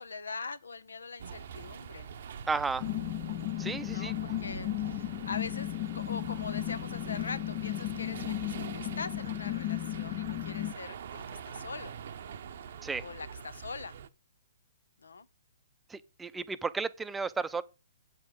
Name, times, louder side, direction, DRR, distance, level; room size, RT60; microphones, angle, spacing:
voice 1, 0.0-2.1 3.8-11.9 13.0-14.0 15.0-15.3, left 4 dB, 85° left, 0.9 m, -42 dB
sound 1, 1.2-14.1, right 7 dB, 60° right, 0.8 m, -44 dB
voice 2, 2.5-2.9 3.6-4.1 12.8-13.0 15.9-17.6, right 4 dB, 10° right, 0.6 m, -33 dB
sound 2, 2.8-10.7, left 16 dB, 40° left, 0.5 m, -35 dB
8.2 x 5.3 x 7.7 m
hypercardioid pair, 130°, 0 cm